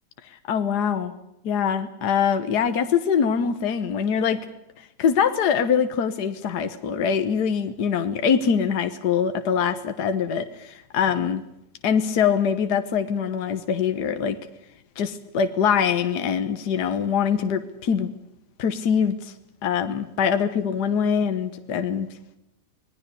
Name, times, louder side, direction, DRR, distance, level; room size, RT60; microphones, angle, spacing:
voice 1, 0.3-1.1 1.4-4.4 4.8-11.4 11.8-14.4 15.0-18.1 18.6-19.3 19.6-22.1, left 7 dB, 70° left, 9 dB, 1.7 m, -23 dB
26.0 x 19.5 x 6.7 m, 0.85 s
omnidirectional pair, 1.9 m